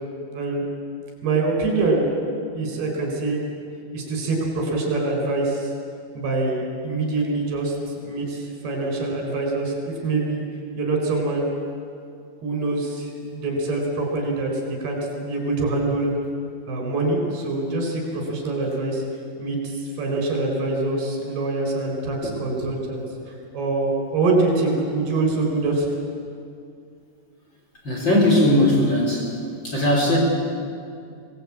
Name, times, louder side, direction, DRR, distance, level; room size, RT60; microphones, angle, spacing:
voice 1, 0.3-0.7 1.2-2.1 2.6-3.4 3.9-5.7 6.2-7.7 8.0-10.4 10.8-11.5 12.4-16.1 16.7-19.0 19.4-25.9, right 3 dB, 70° right, 1 dB, 6.4 m, -24 dB
voice 2, 27.8-29.3 29.6-30.2, left 1 dB, 25° left, -2 dB, 4.6 m, -18 dB
25.5 x 19.0 x 8.6 m, 2.4 s
omnidirectional pair, 4.8 m